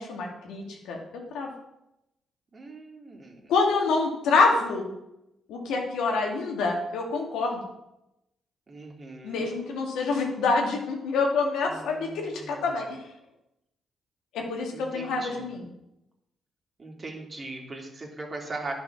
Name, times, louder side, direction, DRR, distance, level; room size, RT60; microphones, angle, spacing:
voice 1, 0.0-1.5 3.5-4.9 5.5-7.6 9.2-13.0 14.3-15.7, left 4 dB, 80° left, 0 dB, 2.2 m, -26 dB
voice 2, 2.5-3.5 8.7-9.5 11.7-12.7 14.7-15.4 16.8-18.7, right 2 dB, 40° right, 0 dB, 2.9 m, -40 dB
10.0 x 6.2 x 5.8 m, 0.87 s
supercardioid pair, 60°, 0 cm